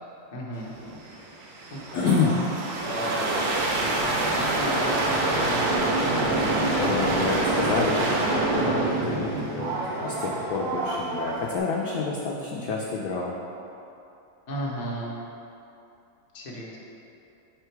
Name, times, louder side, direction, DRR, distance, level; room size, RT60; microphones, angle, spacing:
voice 1, 0.3-0.7 1.7-2.1 2.8-3.6 3.8-6.9 14.5-15.2 16.3-16.8, equal, 45° left, -4 dB, 0.5 m, -35 dB
sound 1, 0.8-11.6, right 2 dB, 85° right, 1.5 m, -26 dB
voice 2, 1.9-2.4 6.4-9.7 10.0-13.3, left 4 dB, 75° left, -2 dB, 0.8 m, -28 dB
5.6 x 3.7 x 4.6 m, 2.8 s
omnidirectional pair, 2.1 m